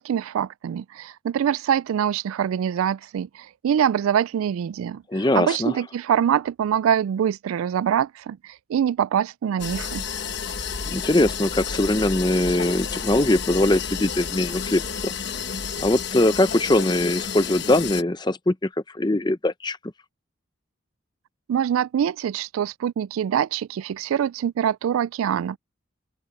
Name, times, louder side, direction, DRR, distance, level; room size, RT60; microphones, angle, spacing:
voice 1, 0.0-10.0 21.5-25.6, right 9 dB, 85° right, 0.3 m, -24 dB
voice 2, 5.1-5.7 10.8-15.1 15.8-18.5 18.9-19.8, left 1 dB, 20° left, 0.7 m, -21 dB
sound 1, 9.6-18.0, left 6 dB, 55° left, 1.3 m, -31 dB
open air
head